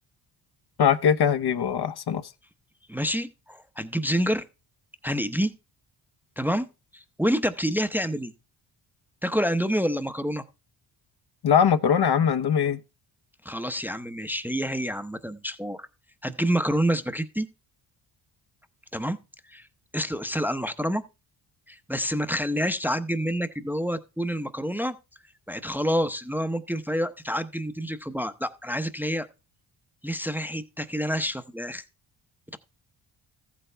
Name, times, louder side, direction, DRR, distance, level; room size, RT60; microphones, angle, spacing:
voice 1, 0.8-2.2 11.4-12.8, left 8 dB, 55° left, 0.9 m, -21 dB
voice 2, 2.9-4.4 5.0-5.5 6.4-6.7 6.9-8.3 9.2-10.4 13.4-15.9 16.2-17.5 18.9-19.2 19.5-19.7 19.9-21.0 21.7-25.0 25.5-29.3 30.0-31.8, equal, 5° right, 0.8 m, -28 dB
14.0 x 8.4 x 3.4 m
cardioid pair, 80°, 47 cm